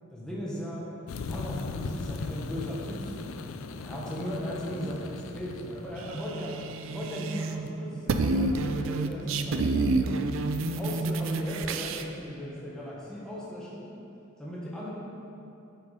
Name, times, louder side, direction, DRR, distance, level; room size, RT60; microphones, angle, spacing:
voice 1, 0.1-0.9 1.3-3.2 3.8-6.5 6.8-10.0 10.8-13.9 14.4-14.9, equal, 5° left, -7 dB, 1.3 m, -37 dB
sound 1, 1.1-7.7, left 4 dB, 75° left, 0.4 m, -38 dB
sound 2, 6.0-7.7 7.9-12.0, right 3 dB, 70° right, 0.4 m, -29 dB
8.7 x 4.7 x 4.9 m, 2.6 s
head